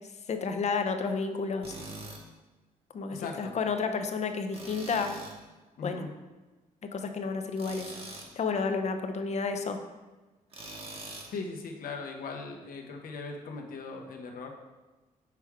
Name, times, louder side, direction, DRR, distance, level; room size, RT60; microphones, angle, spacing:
voice 1, 0.3-1.7 2.9-5.1 5.8-6.0 6.9-7.9 8.4-9.8, left 5 dB, 50° left, 6 dB, 0.6 m, -31 dB
Tools, 1.6-2.2 4.5-5.4 7.6-8.3 10.5-11.3, right 2 dB, 40° right, 1.2 m, -43 dB
voice 2, 3.1-3.6 5.8-6.1 11.3-14.5, left 4 dB, 75° left, 2 dB, 0.9 m, -39 dB
5.9 x 3.5 x 4.7 m, 1.2 s
cardioid pair, 90°, 15 cm